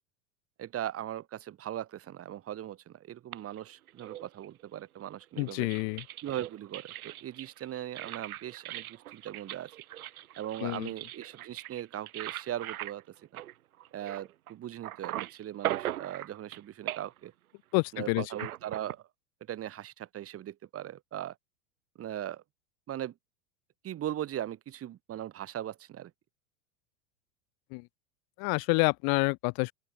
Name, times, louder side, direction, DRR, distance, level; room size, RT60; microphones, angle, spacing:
voice 1, 0.6-5.7 6.2-9.7 10.4-13.0 13.3-13.4 13.9-17.3 17.9-19.0 19.5-21.4 22.0-22.4 22.9-23.1 23.8-26.1, right 11 dB, 30° right, 2.2 m, -39 dB
sound 1, 3.3-4.6 5.2-14.5 14.8-16.6 16.9-17.3 18.3-18.9, right 14 dB, 70° right, 2.8 m, -40 dB
voice 2, 5.4-6.0 10.6-10.9 17.7-18.2 27.7-27.8 28.4-29.7, left 35 dB, 50° left, 3.4 m, -28 dB
open air
hypercardioid pair, 95°, 44 cm